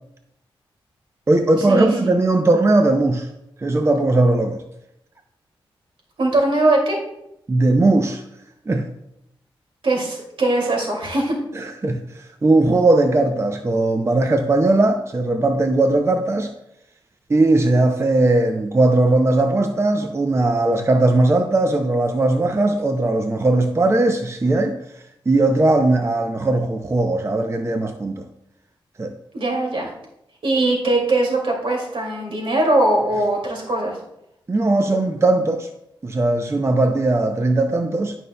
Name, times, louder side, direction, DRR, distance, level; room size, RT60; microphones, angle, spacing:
voice 1, 1.3-3.3 3.6-4.6 7.5-8.2 8.7-8.9 11.5-16.5 17.3-28.3 29.0-29.1 34.5-35.7 36.0-38.1, right 2 dB, 30° right, 0.6 m, -18 dB
voice 2, 6.2-7.0 9.8-11.4 29.3-29.9 30.4-34.0, right 2 dB, 70° right, 2.3 m, -20 dB
11.5 x 5.4 x 2.2 m
cardioid pair, 65°, 10 cm